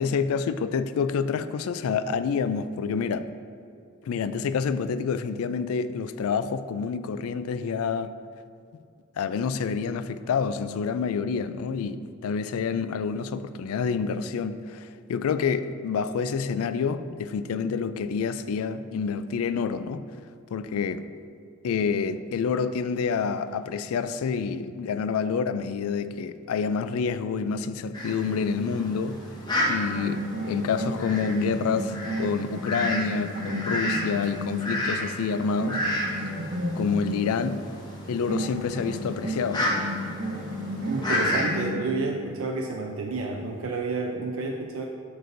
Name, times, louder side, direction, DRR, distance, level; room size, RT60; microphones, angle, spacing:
voice 1, 0.0-3.3 4.0-8.1 9.2-20.0 20.5-21.1 21.6-29.2 29.7-35.9 36.8-37.7 38.1-39.7, left 5 dB, 85° left, 13 dB, 0.3 m, -28 dB
Fowl, 27.9-41.7, left 1 dB, 20° left, 0.8 m, -32 dB
sound 1, 29.9-35.0 35.6-37.2 38.3-42.1, equal, 85° right, 1.5 m, -33 dB
voice 2, 40.9-44.9, right 3 dB, 70° right, 1 dB, 0.5 m, -30 dB
7.8 x 6.7 x 2.6 m, 2.3 s
head